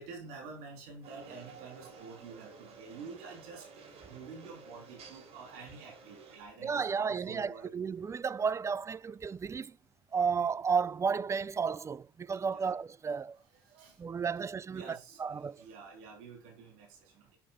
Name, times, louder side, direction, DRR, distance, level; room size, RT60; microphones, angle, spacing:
voice 1, 0.0-3.7 4.1-7.7 12.5-12.7 13.5-14.0 14.7-17.4, right 4 dB, 75° right, 3.2 m, -49 dB
sound 1, 1.0-6.4, right 4 dB, 55° right, 3.2 m, -53 dB
voice 2, 6.6-9.8 10.1-13.4 14.0-15.6, right 6 dB, 25° right, 0.4 m, -33 dB
7.3 x 6.3 x 5.6 m
hypercardioid pair, 75°, 12 cm